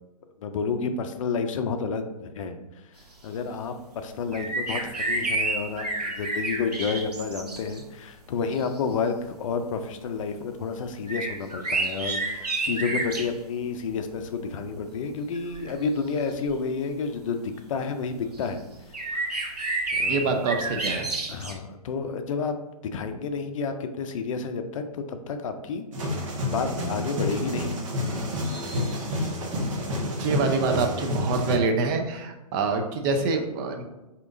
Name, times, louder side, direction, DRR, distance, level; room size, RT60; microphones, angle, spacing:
voice 1, 0.4-18.6 18.9-19.3 19.9-20.5 21.3-22.6 22.9-25.8 26.5-27.8 29.1-29.3, left 5 dB, 55° left, 7 dB, 0.5 m, -30 dB
sound 1, 4.3-7.8 8.5-8.7 11.1-13.3 15.3-15.7 16.5-16.6 18.3-18.5 18.9-21.5, right 2 dB, 90° right, 0.9 m, -29 dB
voice 2, 20.1-21.1 30.0-33.8, right 4 dB, 35° right, 5 dB, 0.5 m, -26 dB
sound 2, 25.9-31.6, left 1 dB, 55° right, 0.9 m, -29 dB
4.7 x 2.8 x 2.6 m, 1.0 s
hypercardioid pair, 125°, 20 cm